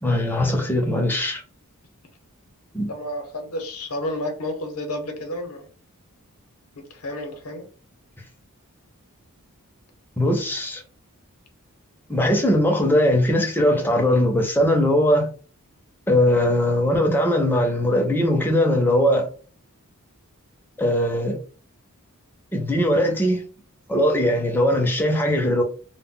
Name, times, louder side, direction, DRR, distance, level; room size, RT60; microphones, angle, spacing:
voice 1, 0.0-1.4 2.7-2.9 10.2-10.8 12.1-15.3 16.1-19.3 20.8-21.4 22.5-23.4 23.9-25.6, left 1 dB, 10° left, 0.5 m, -20 dB
voice 2, 2.9-5.7 6.8-7.6, left 1 dB, 75° left, 0.7 m, -31 dB
2.1 x 2.1 x 3.6 m
head